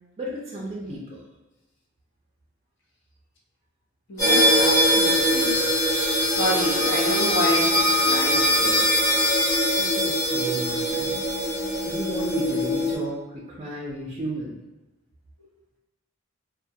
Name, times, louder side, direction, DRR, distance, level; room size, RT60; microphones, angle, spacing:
voice 1, 0.2-1.2 9.7-11.5 11.8-14.5, right 1 dB, 30° right, -4 dB, 0.4 m, -34 dB
voice 2, 4.1-5.6 5.9-8.9, equal, 60° left, -3 dB, 0.6 m, -29 dB
sound 1, 4.2-12.9, equal, 15° left, 0.8 m, -22 dB
2.3 x 2.2 x 2.6 m, 1.0 s
head